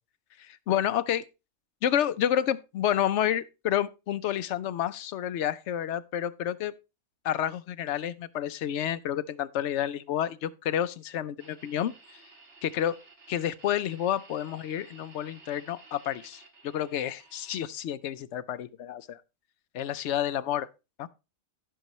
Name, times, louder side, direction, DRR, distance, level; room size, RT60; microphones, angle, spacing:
voice 1, 0.4-1.2 1.8-6.7 7.2-11.9 12.6-13.0 13.3-19.2 19.7-20.7 21.0-21.1, left 10 dB, 65° left, 0.8 m, -29 dB
sound 1, 11.4-17.6, right 3 dB, 60° right, 1.9 m, -54 dB
16.0 x 5.5 x 3.0 m
omnidirectional pair, 1.4 m